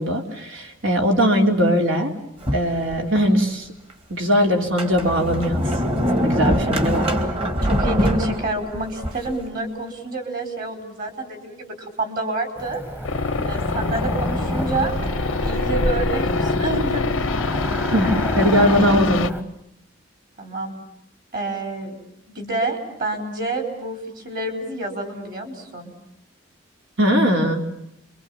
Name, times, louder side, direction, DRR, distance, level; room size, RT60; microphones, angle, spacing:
voice 1, 0.0-2.1 2.5-3.7 4.1-5.7 6.1-7.1 17.9-19.3 27.0-27.6, equal, 75° right, 2 dB, 3.6 m, -20 dB
Sliding door, 2.4-3.3 3.9-4.0 4.6-9.4, equal, 30° right, 1.9 m, -23 dB
voice 2, 7.6-12.8 13.4-14.9 15.4-17.1 20.4-20.7 21.3-22.0 22.3-25.9, right 2 dB, 45° right, 5 dB, 4.7 m, -28 dB
Cricket / Motor vehicle (road), 12.6-19.4, equal, 10° right, 1.2 m, -28 dB
sound 1, 13.0-19.3, left 3 dB, 90° left, 0.9 m, -25 dB
29.5 x 23.5 x 7.3 m, 0.81 s
head